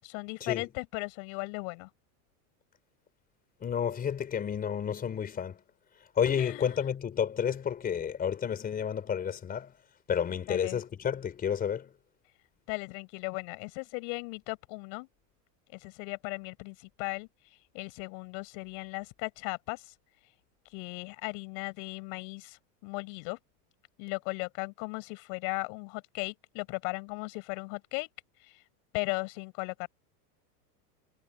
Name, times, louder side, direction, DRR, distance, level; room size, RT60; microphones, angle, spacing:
voice 1, 0.0-1.9 6.3-6.7 10.5-10.8 12.7-15.1 15.7-17.3 17.7-19.9 20.7-23.4 24.0-28.1 28.9-29.9, left 37 dB, 50° left, 7.8 m, -37 dB
voice 2, 3.6-5.6 6.2-9.7 10.1-11.9, left 8 dB, 20° left, 4.4 m, -31 dB
supercardioid pair, 160°, 47 cm